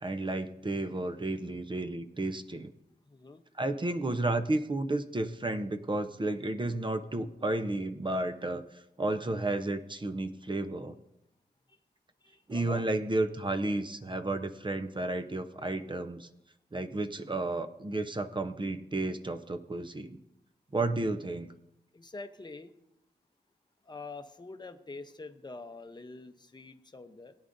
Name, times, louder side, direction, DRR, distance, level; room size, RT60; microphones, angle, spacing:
voice 1, 0.0-2.7 3.6-8.6 9.0-11.0 12.5-16.3 16.7-20.2 20.7-21.5, right 2 dB, 25° right, 10 dB, 0.6 m, -32 dB
voice 2, 3.0-3.4 11.7-11.8 12.2-12.9 21.9-22.7 23.8-27.4, left 3 dB, 25° left, 7 dB, 0.8 m, -45 dB
18.0 x 9.6 x 2.6 m, 0.85 s
wide cardioid pair, 100°, 18 cm